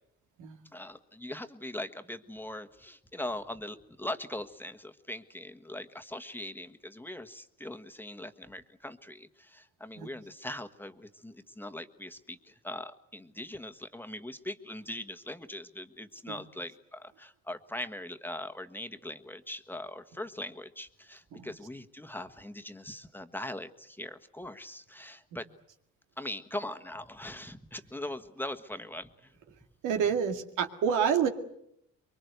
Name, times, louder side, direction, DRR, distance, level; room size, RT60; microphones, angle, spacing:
voice 1, 0.7-25.4 26.2-29.3, left 1 dB, 5° left, 8 dB, 1.4 m, -41 dB
voice 2, 29.8-31.3, right 7 dB, 90° right, 5 dB, 2.2 m, -28 dB
24.0 x 23.0 x 8.1 m, 0.75 s
cardioid pair, 90°, 30 cm